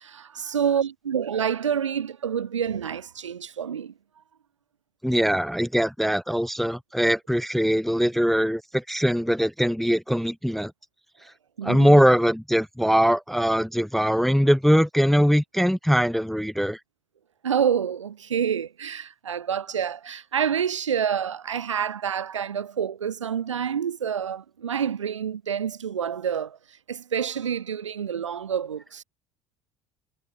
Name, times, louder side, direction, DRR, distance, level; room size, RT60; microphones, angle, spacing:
voice 1, 0.0-3.9 11.6-12.0 17.4-26.6 26.9-29.0, right 8 dB, 80° right, 1.5 m, -28 dB
voice 2, 5.0-10.7 11.6-16.8, equal, ahead, 0.5 m, -21 dB
figure-of-eight pair, 65°, 16 cm